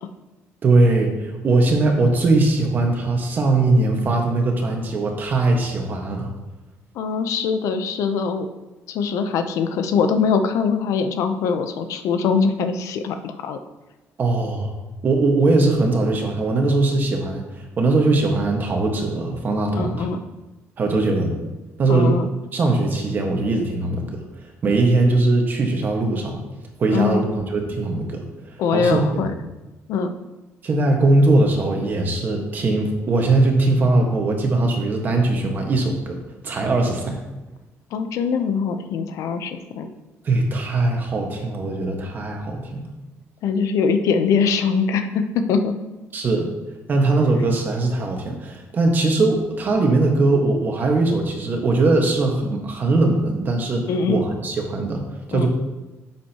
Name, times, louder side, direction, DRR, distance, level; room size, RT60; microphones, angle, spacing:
voice 1, 0.6-6.3 14.2-14.7 15.0-17.4 17.8-20.1 20.8-21.4 21.8-22.2 22.5-24.2 24.6-26.4 26.8-28.2 28.7-29.0 30.6-36.2 36.4-37.2 40.2-42.9 46.1-46.5 46.9-55.0 55.3-55.5, right 2 dB, 35° right, 2 dB, 1.5 m, -20 dB
voice 2, 6.9-8.5 8.9-13.6 19.7-20.2 21.9-22.3 26.9-27.2 28.6-29.3 29.9-30.2 37.9-39.9 43.4-45.8 53.9-54.3 55.3-55.5, left 5 dB, 75° left, 8 dB, 0.7 m, -22 dB
10.0 x 7.4 x 3.0 m, 1.1 s
cardioid pair, 150°, 5 cm